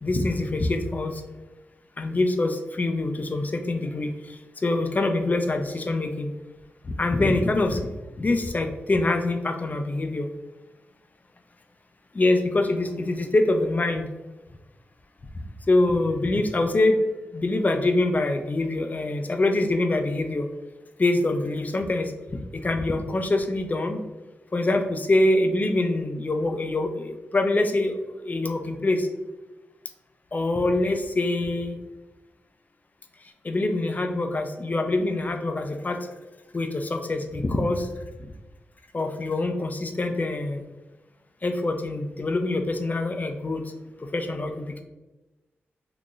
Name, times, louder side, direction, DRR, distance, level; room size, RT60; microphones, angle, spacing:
voice 1, 0.0-1.2 2.0-4.1 4.6-6.3 6.8-7.9 8.2-10.3 12.1-14.1 15.7-17.0 17.3-20.5 21.0-22.1 22.5-24.0 24.5-29.1 30.3-31.8 33.4-36.0 36.5-37.9 38.9-40.6 41.4-43.6 44.1-44.8, left 2 dB, 40° left, 6 dB, 0.4 m, -24 dB
3.7 x 2.8 x 2.4 m, 1.1 s
cardioid pair, 55°, 4 cm